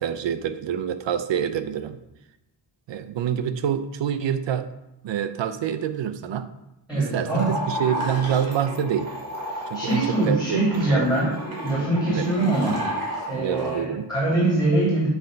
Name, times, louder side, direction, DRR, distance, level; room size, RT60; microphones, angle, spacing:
voice 1, 0.0-2.0 2.9-4.7 5.0-6.5 6.9-9.1 9.7-11.1 12.1-12.3 13.3-14.1, right 9 dB, 75° right, 11 dB, 0.6 m, -27 dB
voice 2, 6.9-7.6 9.5-11.3 11.6-12.8 13.3-15.1, right 2 dB, ahead, -9 dB, 2.6 m, -23 dB
sound 1, 7.2-13.8, equal, 55° right, 2.5 m, -32 dB
8.1 x 3.4 x 5.2 m, 0.89 s
wide cardioid pair, 150°, 45 cm